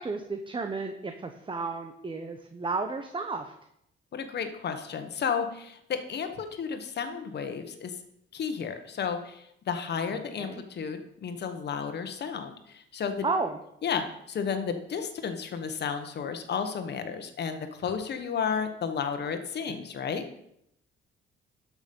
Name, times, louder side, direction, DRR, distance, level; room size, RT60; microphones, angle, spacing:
voice 1, 0.0-3.4 10.4-10.6 13.2-13.6, right 3 dB, 25° right, 6 dB, 1.0 m, -32 dB
voice 2, 4.1-7.9 8.3-13.2 13.8-20.4, left 6 dB, 60° left, 7 dB, 1.4 m, -32 dB
12.0 x 6.3 x 5.4 m, 0.75 s
cardioid pair, 90°, 20 cm